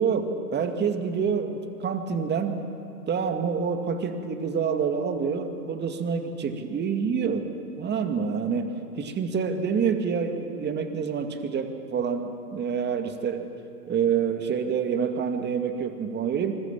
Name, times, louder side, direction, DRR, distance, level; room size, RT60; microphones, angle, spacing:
voice 1, 0.0-2.6 3.1-7.5 7.8-13.5 13.9-16.5, right 6 dB, 20° right, 6 dB, 2.2 m, -27 dB
26.0 x 21.0 x 7.4 m, 2.5 s
figure-of-eight pair, 100°, 47 cm